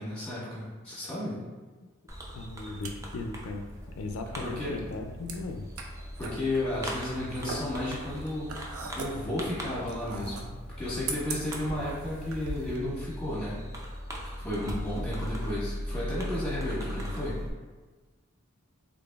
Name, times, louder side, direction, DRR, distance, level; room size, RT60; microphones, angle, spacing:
voice 1, 0.0-1.4 4.4-4.8 6.2-8.5 8.9-10.5 10.8-13.6 14.4-17.4, left 1 dB, 5° left, -8 dB, 1.3 m, -33 dB
Fireworks, 2.1-17.5, equal, 15° right, 0.4 m, -39 dB
voice 2, 2.3-3.7 3.9-5.6, left 3 dB, 75° left, 4 dB, 0.3 m, -37 dB
sound 1, 2.4-12.8, right 3 dB, 85° right, 0.5 m, -41 dB
3.8 x 3.4 x 2.3 m, 1.3 s
head